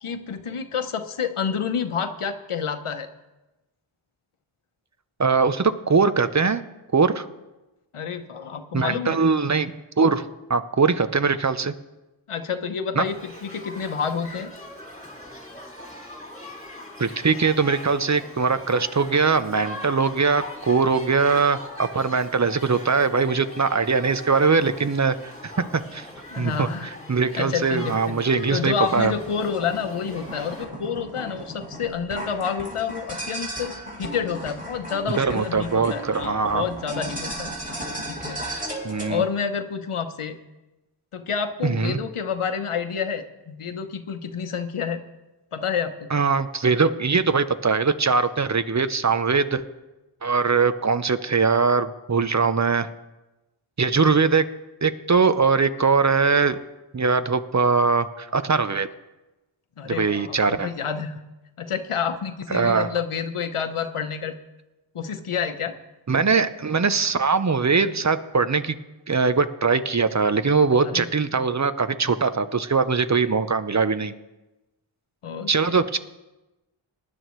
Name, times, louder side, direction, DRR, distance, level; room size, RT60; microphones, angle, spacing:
voice 1, 0.0-3.1 7.9-9.2 12.3-14.5 26.3-26.9 27.3-28.2 28.5-33.7 34.0-37.5 38.1-38.4 39.1-40.4 41.1-45.0 45.5-46.2 59.8-61.2 61.6-64.4 64.9-65.7 70.8-71.1 75.2-75.8, left 6 dB, 90° left, 8 dB, 0.9 m, -29 dB
voice 2, 5.2-6.6 6.9-7.3 8.7-10.2 10.5-11.7 12.9-13.1 17.0-26.1 26.4-29.1 35.2-36.6 38.8-39.2 41.6-42.0 46.1-49.6 50.2-52.9 53.8-54.4 54.8-56.6 56.9-58.9 59.9-60.7 62.5-62.9 66.1-68.8 69.1-74.1 75.5-76.0, right 4 dB, 35° right, 12 dB, 0.7 m, -21 dB
Shout / Human group actions, 13.0-30.6, left 1 dB, 15° left, 2.3 m, -41 dB
sound 1, 28.8-39.1, right 1 dB, 15° right, 4.3 m, -35 dB
19.5 x 11.0 x 3.1 m, 1.0 s
wide cardioid pair, 50°, 49 cm